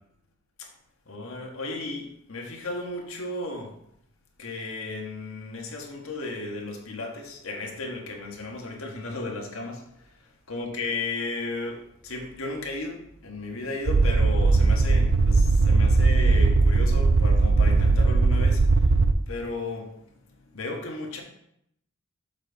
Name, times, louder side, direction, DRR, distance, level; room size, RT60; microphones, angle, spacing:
voice 1, 1.0-3.8 4.4-21.2, left 2 dB, 80° left, 1 dB, 1.5 m, -35 dB
sound 1, 13.9-19.1, right 3 dB, 75° right, 0.5 m, -19 dB
7.4 x 5.2 x 3.9 m, 0.75 s
head